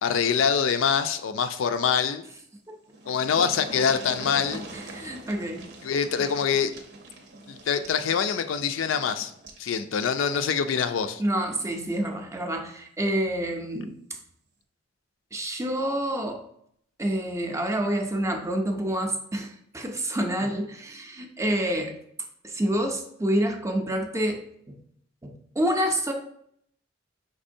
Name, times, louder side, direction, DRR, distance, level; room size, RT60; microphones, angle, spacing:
voice 1, 0.0-2.2 3.1-4.6 5.8-6.7 7.5-9.3 9.6-11.2, left 7 dB, 85° left, 9 dB, 0.4 m, -25 dB
sound 1, 2.6-2.7 2.9-9.7 11.0-11.1 11.5-11.6, right 2 dB, 65° right, 0.7 m, -42 dB
voice 2, 4.7-5.7 11.2-14.0 15.3-16.4 17.0-22.0 22.4-24.8 25.2-26.1, right 1 dB, 15° right, 4 dB, 0.5 m, -28 dB
5.3 x 3.5 x 2.6 m, 0.68 s
head